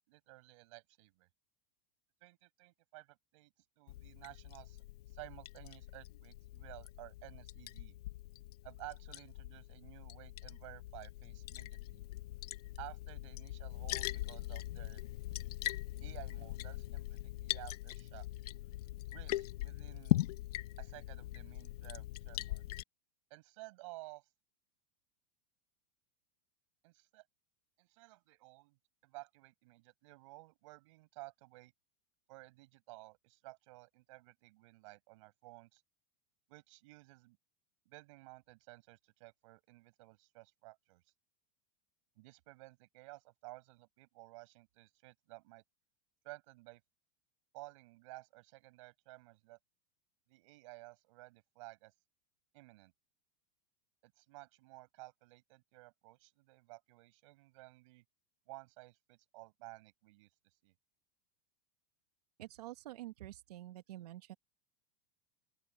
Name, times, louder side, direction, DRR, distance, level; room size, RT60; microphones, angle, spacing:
voice 1, 0.1-1.3 2.2-8.0 8.6-12.0 12.8-15.0 16.0-18.3 19.1-20.2 20.8-22.6 23.3-24.3 26.8-27.2 27.8-31.7 32.3-35.8 36.5-37.4 37.8-41.1 42.1-45.6 46.2-46.8 47.5-49.6 50.3-51.9 52.5-52.9 54.0-58.0 58.5-60.3 60.6-60.7, right 22 dB, 50° right, 5.1 m, -54 dB
Liquid, 3.9-22.8, left 16 dB, 75° left, 0.6 m, -41 dB
voice 2, 62.4-64.3, right 15 dB, 85° right, 1.4 m, -48 dB
open air
supercardioid pair, 170°, 20 cm